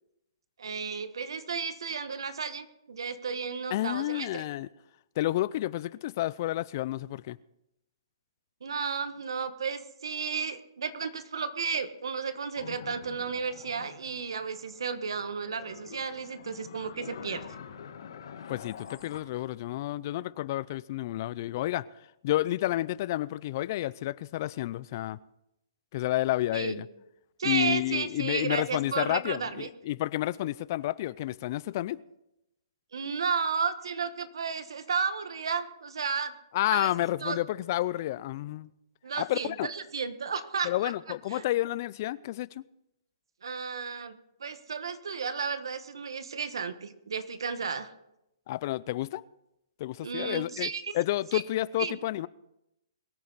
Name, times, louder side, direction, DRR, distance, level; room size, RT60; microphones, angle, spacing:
voice 1, 0.6-4.4 8.6-17.4 26.5-26.8 27.4-29.7 32.9-36.3 36.7-36.9 37.2-37.4 39.0-40.9 41.3-41.4 43.4-47.9 50.0-51.0 51.3-51.4 51.8-52.0, right 5 dB, 75° right, 1.3 m, -33 dB
voice 2, 3.7-4.7 5.2-7.4 18.5-21.9 22.2-25.2 25.9-26.9 27.4-32.0 36.5-38.7 39.2-39.7 40.6-42.6 48.5-49.2 49.8-52.3, left 15 dB, 45° left, 0.4 m, -30 dB
sound 1, 12.6-19.2, left 7 dB, 65° left, 1.6 m, -46 dB
22.5 x 9.5 x 4.1 m
hypercardioid pair, 145°, 2 cm